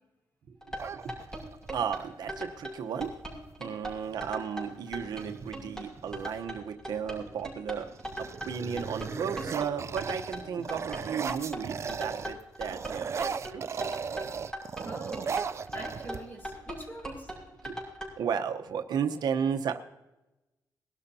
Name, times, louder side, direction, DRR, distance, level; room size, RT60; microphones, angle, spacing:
sound 1, 0.6-18.1, right 1 dB, 5° left, 5.7 m, -39 dB
sound 2, 0.8-1.7 3.4-3.5 3.8-4.3 4.9-6.4 7.0-7.4 7.8-12.3 12.6-16.5, right 6 dB, 40° right, 0.5 m, -37 dB
voice 1, 0.9-1.3 1.7-3.1 3.6-7.9 8.2-13.9 15.7-15.8 16.6-16.7 17.6-17.8 18.2-19.8, right 7 dB, 70° right, 6 dB, 1.0 m, -34 dB
voice 2, 14.8-15.3 15.7-17.3, right 1 dB, 25° left, 0 dB, 3.9 m, -43 dB
21.0 x 12.5 x 2.8 m, 1.0 s
cardioid pair, 120°, 7 cm